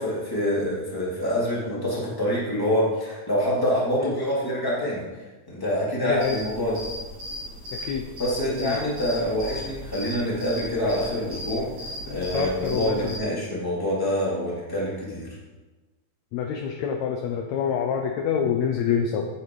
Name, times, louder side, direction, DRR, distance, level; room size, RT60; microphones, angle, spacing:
voice 1, 0.0-5.1 5.5-6.9 8.2-11.7 12.1-15.3, equal, 5° left, -7 dB, 2.8 m, -26 dB
voice 2, 6.0-6.4 7.7-8.0 8.6-8.8 12.1-13.2 16.3-19.3, left 7 dB, 75° left, 3 dB, 1.7 m, -26 dB
sound 1, 6.2-13.2, left 1 dB, 80° right, 4.8 m, -37 dB
9.3 x 9.0 x 4.8 m, 1.2 s
omnidirectional pair, 3.9 m